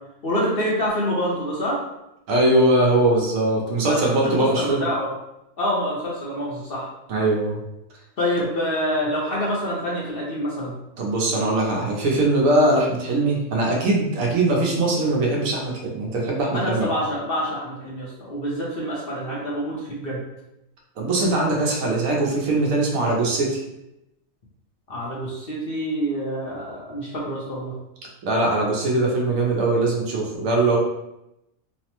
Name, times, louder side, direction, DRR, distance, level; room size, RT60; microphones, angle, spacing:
voice 1, 0.2-1.8 3.9-5.1 5.6-6.9 8.2-10.7 16.5-20.2 24.9-27.7, equal, 55° left, -5 dB, 0.7 m, -26 dB
voice 2, 2.3-4.8 7.1-7.6 11.0-16.9 21.0-23.6 28.3-30.8, right 2 dB, 80° right, -2 dB, 1.1 m, -21 dB
3.2 x 2.0 x 2.9 m, 0.88 s
omnidirectional pair, 1.4 m